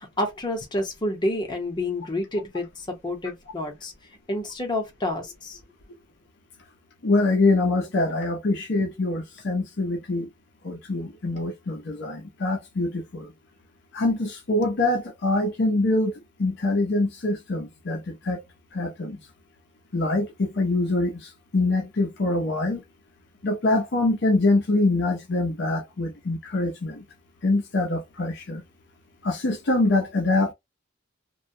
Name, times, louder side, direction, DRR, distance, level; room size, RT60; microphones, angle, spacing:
voice 1, 0.2-3.9 4.3-5.6, left 1 dB, 25° left, 0.8 m, -29 dB
voice 2, 7.0-10.3 10.6-13.3 13.9-16.1 16.4-18.4 18.7-19.2 19.9-22.8 23.4-27.0 27.4-28.6 29.2-30.5, left 2 dB, 60° left, 0.6 m, -24 dB
2.2 x 2.1 x 2.6 m
head